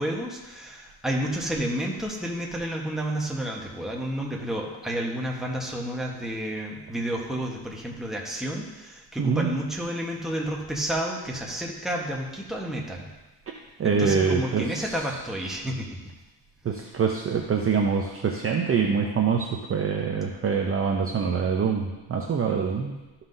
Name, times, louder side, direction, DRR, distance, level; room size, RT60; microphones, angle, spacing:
voice 1, 0.0-13.1 13.8-15.9, right 1 dB, ahead, -2 dB, 1.1 m, -30 dB
voice 2, 9.2-9.5 13.8-14.9 16.6-23.0, right 6 dB, 30° right, 1 dB, 0.6 m, -25 dB
12.5 x 5.7 x 2.7 m, 1.1 s
cardioid pair, 140°, 44 cm